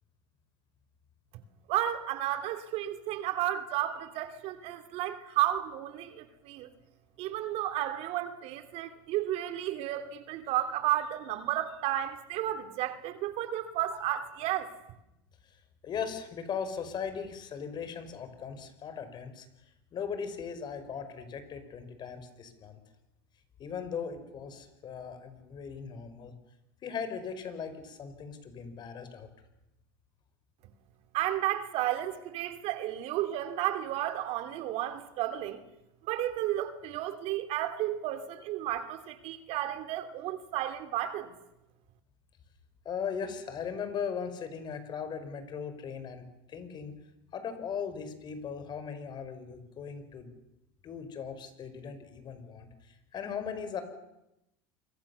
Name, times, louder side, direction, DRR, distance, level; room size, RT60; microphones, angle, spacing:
voice 1, 1.7-6.7 7.2-14.7 31.1-35.6 36.1-41.3, right 13 dB, 60° right, 3.0 m, -32 dB
voice 2, 15.8-19.5 19.9-22.8 23.6-26.3 26.8-29.3 42.8-46.9 47.3-50.3 50.8-53.8, left 6 dB, 40° left, 5.0 m, -38 dB
27.5 x 23.5 x 7.1 m
supercardioid pair, 120°, 12 cm